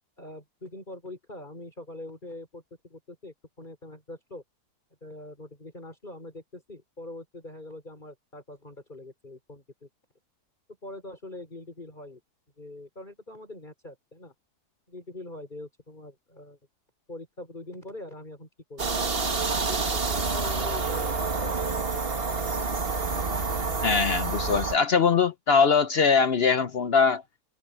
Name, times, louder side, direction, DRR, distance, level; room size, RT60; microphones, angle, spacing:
voice 1, 0.2-4.4 5.0-9.9 10.8-12.2 12.6-14.3 14.9-16.6 17.1-18.9 19.6-22.5, left 1 dB, 30° left, 5.4 m, -43 dB
sound 1, 18.8-24.8, right 4 dB, 35° right, 1.9 m, -28 dB
voice 2, 23.8-27.2, left 5 dB, 55° left, 0.7 m, -22 dB
omnidirectional pair, 1.7 m